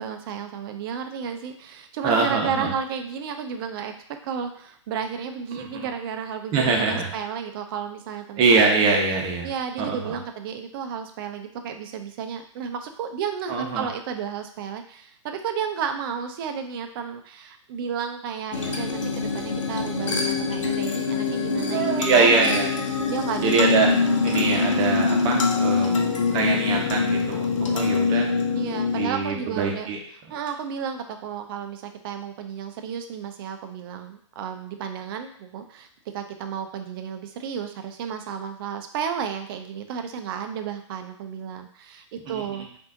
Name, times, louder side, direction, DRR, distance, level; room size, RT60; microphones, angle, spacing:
voice 1, 0.0-8.4 9.4-22.6 23.1-23.6 24.0-24.2 27.7-27.8 28.5-29.9 30.3-35.9 36.1-42.7, right 7 dB, 45° right, 6 dB, 0.6 m, -32 dB
voice 2, 2.0-2.7 5.6-5.9 6.5-7.1 8.4-9.5 9.8-10.2 13.5-13.8 21.6-22.7 23.4-23.9 24.2-25.9 26.3-27.5 27.7-28.3 28.9-30.0 42.3-42.6, right 4 dB, 30° right, 0 dB, 1.0 m, -23 dB
sound 1, 18.5-29.1, left 4 dB, 75° left, 0.8 m, -24 dB
5.5 x 2.7 x 2.6 m, 0.62 s
hypercardioid pair, 125°, 16 cm